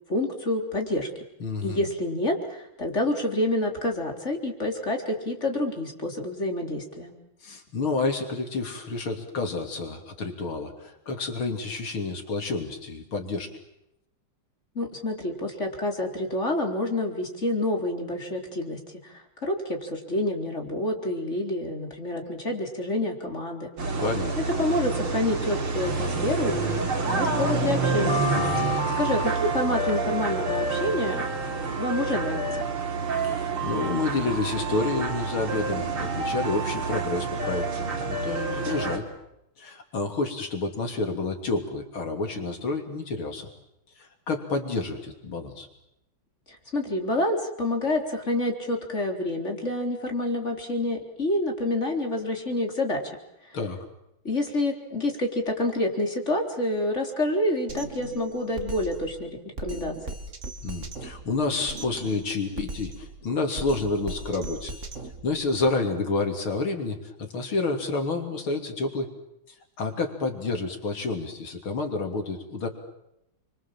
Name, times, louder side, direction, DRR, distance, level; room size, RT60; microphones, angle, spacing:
voice 1, 0.1-1.1 1.6-7.1 14.8-23.7 24.6-28.2 29.0-31.2 31.8-32.6 46.5-53.0 54.2-59.3 59.6-59.9, left 1 dB, 30° left, 2 dB, 4.2 m, -28 dB
voice 2, 1.4-1.8 7.4-13.5 24.0-24.4 28.3-28.8 33.2-39.0 39.6-43.5 44.0-45.7 53.5-53.8 60.6-64.8 65.2-69.1 69.8-72.7, left 3 dB, 75° left, 4 dB, 3.9 m, -29 dB
sound 1, 23.8-39.0, right 3 dB, 85° right, 4.2 m, -28 dB
Mallet percussion, 28.1-30.9, left 10 dB, 50° left, 2.0 m, -36 dB
Drum kit, 57.7-65.7, right 2 dB, 35° right, 2.6 m, -39 dB
30.0 x 24.5 x 7.5 m, 0.83 s
omnidirectional pair, 2.3 m